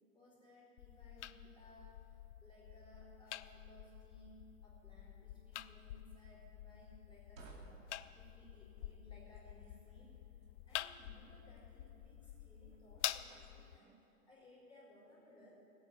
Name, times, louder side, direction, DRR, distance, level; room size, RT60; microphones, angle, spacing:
voice 1, 0.1-10.1 10.7-13.9 14.3-15.6, equal, 10° left, -8 dB, 4.2 m, -62 dB
sound 1, 0.8-13.8, left 13 dB, 55° left, 0.6 m, -48 dB
sound 2, 7.1-13.7, right 4 dB, 65° right, 2.8 m, -62 dB
17.0 x 8.9 x 8.3 m, 2.8 s
hypercardioid pair, 115°, 43 cm